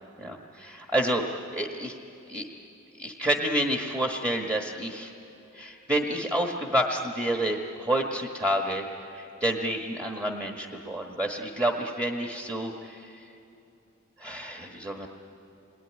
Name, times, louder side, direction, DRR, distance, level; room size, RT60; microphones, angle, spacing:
voice 1, 0.2-2.0 2.3-2.5 3.0-5.1 5.5-13.2 14.2-15.1, right 1 dB, 15° right, 2 dB, 1.4 m, -29 dB
27.0 x 21.0 x 9.9 m, 2.8 s
head